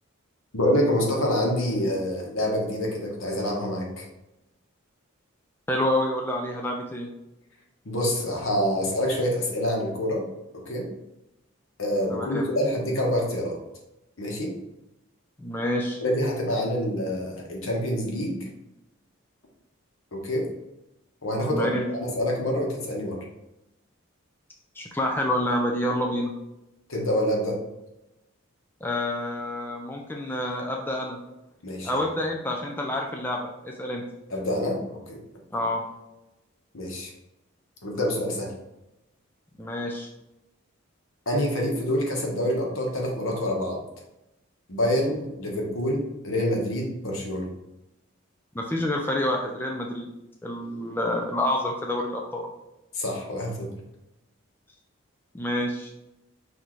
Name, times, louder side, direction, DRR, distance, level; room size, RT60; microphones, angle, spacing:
voice 1, 0.5-4.0 7.8-10.2 10.5-10.9 11.8-13.6 14.2-14.5 16.0-18.4 20.1-20.5 21.2-23.2 26.9-27.6 31.6-32.0 34.3-34.8 35.1-35.2 36.7-37.1 37.8-38.5 41.3-43.8 44.7-47.5 52.9-53.7, equal, 70° left, 0 dB, 1.1 m, -26 dB
voice 2, 5.7-7.1 12.1-12.5 15.4-16.0 21.5-21.9 24.8-26.3 28.8-31.2 31.8-34.0 35.5-35.8 39.6-40.1 48.5-50.1 50.4-52.5 55.3-55.9, left 1 dB, 10° left, 0 dB, 0.4 m, -28 dB
6.0 x 2.7 x 3.1 m, 0.94 s
head